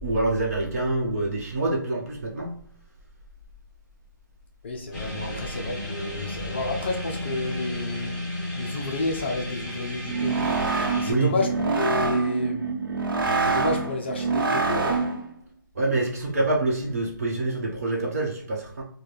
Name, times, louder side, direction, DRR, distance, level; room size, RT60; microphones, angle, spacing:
voice 1, 0.0-2.6 5.1-5.4 11.0-11.3 15.7-18.8, right 2 dB, 45° right, 1.0 m, -26 dB
voice 2, 4.6-8.2 8.5-10.5 11.0-12.7 13.4-15.0, left 2 dB, 30° left, 0.5 m, -30 dB
sound 1, 4.9-11.1, left 1 dB, 5° left, 1.3 m, -33 dB
sound 2, 10.0-15.3, right 4 dB, 80° right, 0.9 m, -25 dB
4.1 x 2.2 x 3.2 m
hypercardioid pair, 175°, 11 cm